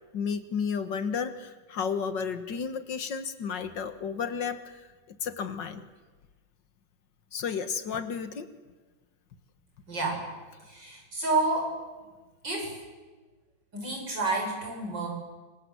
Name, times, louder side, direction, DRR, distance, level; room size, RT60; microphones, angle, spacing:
voice 1, 0.1-5.9 7.3-8.5, left 6 dB, 65° left, 10 dB, 2.1 m, -32 dB
voice 2, 9.9-10.3 10.6-11.8 12.4-12.8 13.7-15.1, right 3 dB, 65° right, 1 dB, 7.4 m, -29 dB
27.5 x 24.5 x 8.0 m, 1.3 s
omnidirectional pair, 2.1 m